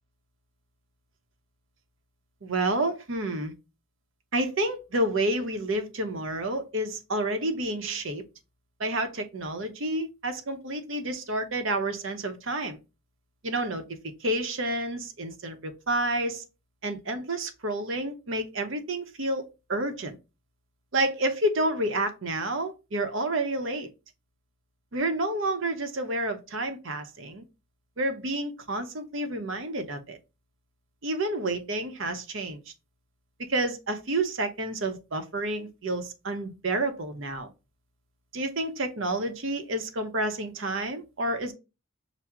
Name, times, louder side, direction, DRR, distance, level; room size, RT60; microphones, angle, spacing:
voice 1, 2.4-3.5 4.3-8.2 8.8-12.8 13.4-13.8 14.2-16.4 16.8-20.2 20.9-23.9 24.9-27.4 28.0-30.2 31.0-32.7 33.4-37.5 38.3-41.5, right 1 dB, 60° right, 0.7 m, -29 dB
5.8 x 2.0 x 3.6 m
head